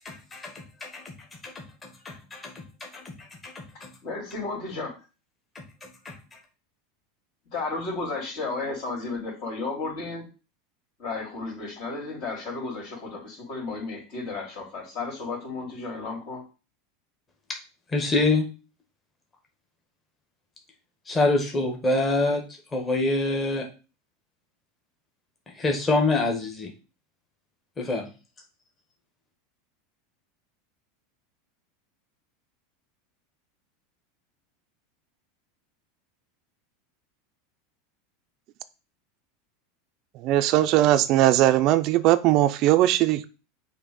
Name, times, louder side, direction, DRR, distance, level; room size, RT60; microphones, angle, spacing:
voice 1, 0.0-1.1 1.4-3.9 5.5-6.4 17.9-18.5 21.1-22.4 22.7-23.7 25.5-26.7 27.8-28.1, left 2 dB, 20° left, 1.4 m, -26 dB
voice 2, 3.7-4.9 7.5-10.2 11.0-16.4, left 3 dB, 55° left, 3.2 m, -33 dB
voice 3, 40.2-43.3, right 14 dB, 50° right, 0.4 m, -19 dB
6.7 x 2.8 x 5.4 m
supercardioid pair, 115°, 0 cm